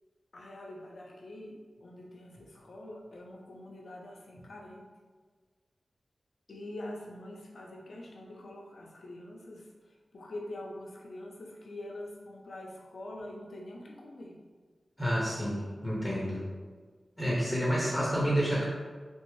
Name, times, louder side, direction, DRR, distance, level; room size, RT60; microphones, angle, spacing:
voice 1, 0.3-4.9 6.5-14.4 17.5-18.5, left 1 dB, 75° left, -1 dB, 0.6 m, -45 dB
voice 2, 15.0-16.4 17.2-18.6, equal, ahead, -7 dB, 0.8 m, -29 dB
3.4 x 2.6 x 3.1 m, 1.5 s
wide cardioid pair, 85°, 0 cm